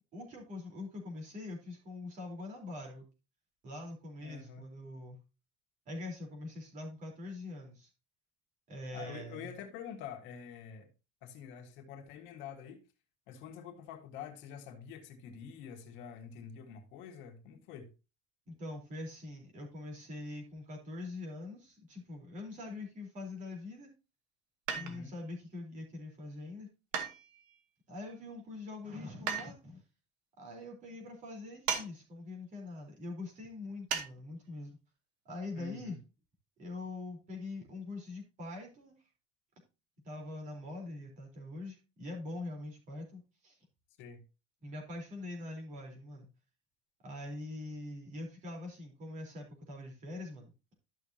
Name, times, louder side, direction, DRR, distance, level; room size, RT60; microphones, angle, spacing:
voice 1, 0.1-3.1 3.6-5.2 5.9-7.9 8.7-9.5 18.5-23.9 24.7-26.7 27.9-29.8 30.4-34.8 35.3-36.0 36.6-38.9 40.0-43.6 44.6-46.3 47.0-50.5, left 2 dB, 35° right, 4.0 m, -43 dB
voice 2, 4.2-4.7 8.9-10.9 11.2-12.8 13.3-17.9 24.7-25.1 35.5-36.0 44.0-44.2, left 8 dB, 65° left, 1.8 m, -47 dB
sound 1, 24.7-25.2 26.9-27.6 29.3-29.5 31.7-31.9 32.2-32.3 33.9-34.1 34.5-34.6, right 7 dB, 85° right, 2.3 m, -35 dB
13.0 x 6.4 x 2.8 m
cardioid pair, 175°, 21 cm